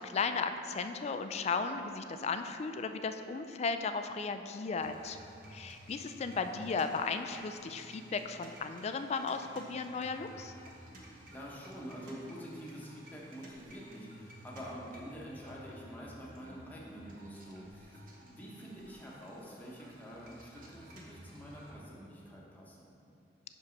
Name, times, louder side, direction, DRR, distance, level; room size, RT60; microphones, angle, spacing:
voice 1, 0.0-5.2 5.5-10.5, left 4 dB, 40° left, 9 dB, 0.3 m, -35 dB
sound 1, 4.8-21.7, right 1 dB, 55° right, 1.0 m, -54 dB
voice 2, 11.3-22.9, equal, 10° left, -4 dB, 1.1 m, -47 dB
5.5 x 5.4 x 5.2 m, 2.7 s
head